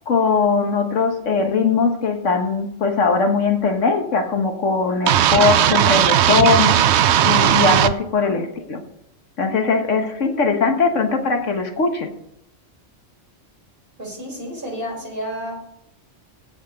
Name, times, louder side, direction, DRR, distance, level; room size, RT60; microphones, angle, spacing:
voice 1, 0.1-6.7 7.2-8.8 9.4-12.1, left 4 dB, 75° left, 5 dB, 1.6 m, -20 dB
sound 1, 5.1-7.9, right 11 dB, 65° right, 0.8 m, -16 dB
voice 2, 14.0-15.5, equal, 45° right, -3 dB, 4.9 m, -31 dB
15.5 x 5.2 x 5.3 m, 0.78 s
omnidirectional pair, 1.3 m